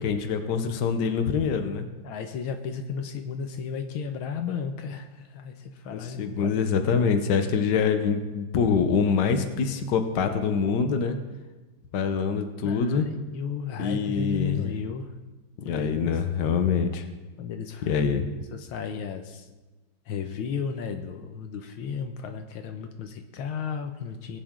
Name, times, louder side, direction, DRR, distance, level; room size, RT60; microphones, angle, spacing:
voice 1, 0.0-1.9 5.9-11.2 11.9-13.1 13.8-14.7 15.6-17.0 17.8-18.3, left 6 dB, 60° left, 7 dB, 1.6 m, -25 dB
voice 2, 2.0-6.6 12.6-15.1 15.6-16.2 17.4-17.9 18.5-19.5 20.1-24.4, left 6 dB, 80° left, 6 dB, 1.7 m, -34 dB
19.0 x 9.3 x 3.8 m, 1.2 s
omnidirectional pair, 2.3 m